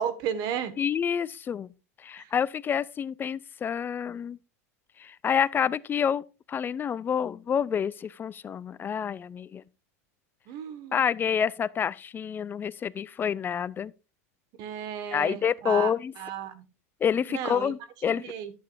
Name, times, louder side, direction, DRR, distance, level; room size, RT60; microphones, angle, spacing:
voice 1, 0.0-0.7 2.2-2.3 10.5-11.0 14.6-16.6 17.3-17.7 18.0-18.5, right 9 dB, 50° right, 1.5 m, -33 dB
voice 2, 0.8-1.7 2.0-4.4 5.0-9.6 10.9-13.9 15.1-16.1 17.0-18.2, left 8 dB, 25° left, 0.4 m, -28 dB
11.0 x 8.8 x 2.6 m
hypercardioid pair, 105°, 9 cm